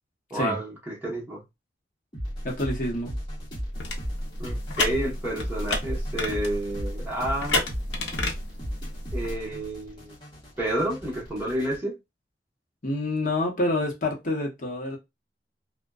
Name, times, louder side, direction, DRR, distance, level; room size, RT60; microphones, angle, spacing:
voice 1, 0.3-1.4 4.4-7.6 9.1-10.1 10.6-12.0, right 1 dB, 10° right, 0.9 m, -30 dB
sound 1, 2.1-11.8, equal, 25° left, 1.0 m, -35 dB
voice 2, 2.4-3.1 12.8-15.0, left 1 dB, 45° left, 0.8 m, -27 dB
sound 2, 3.7-9.3, left 2 dB, 85° left, 0.6 m, -32 dB
2.5 x 2.1 x 2.3 m
head